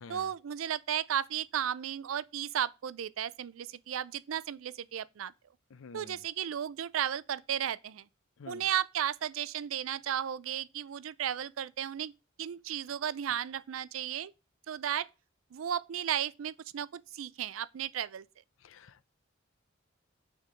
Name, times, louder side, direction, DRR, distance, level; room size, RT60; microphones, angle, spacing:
voice 1, 0.1-5.3 5.9-8.0 8.5-12.1 12.4-14.3 14.7-15.1 15.5-18.2, right 9 dB, 85° right, 0.4 m, -34 dB
voice 2, 5.7-6.2 8.4-8.6 18.6-19.1, left 4 dB, 75° left, 0.5 m, -49 dB
6.6 x 3.6 x 6.2 m
head